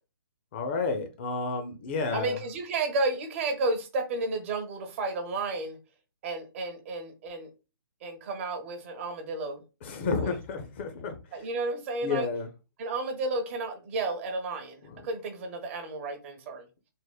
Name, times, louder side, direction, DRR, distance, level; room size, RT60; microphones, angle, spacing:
voice 1, 0.5-2.4 9.8-11.4 12.0-12.5 14.8-15.0, left 4 dB, 30° left, 0.4 m, -31 dB
voice 2, 2.1-5.8 6.2-7.5 8.0-9.6 10.2-10.3 11.3-12.3 12.8-16.7, right 2 dB, 35° right, 0.6 m, -32 dB
3.4 x 2.0 x 2.2 m
hypercardioid pair, 145°, 12 cm